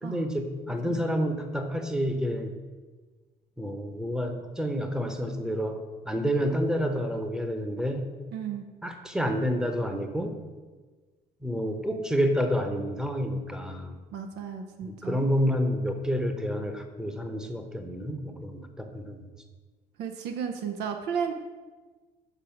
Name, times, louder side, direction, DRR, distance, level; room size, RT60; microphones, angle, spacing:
voice 1, 0.0-2.5 3.6-5.8 6.0-8.1 8.8-10.4 11.4-13.9 14.8-19.3, equal, 5° right, 6 dB, 0.8 m, -29 dB
voice 2, 8.3-8.7 14.1-15.2 20.0-21.3, right 7 dB, 85° right, 5 dB, 0.7 m, -33 dB
6.8 x 5.0 x 5.8 m, 1.4 s
cardioid pair, 110°, 17 cm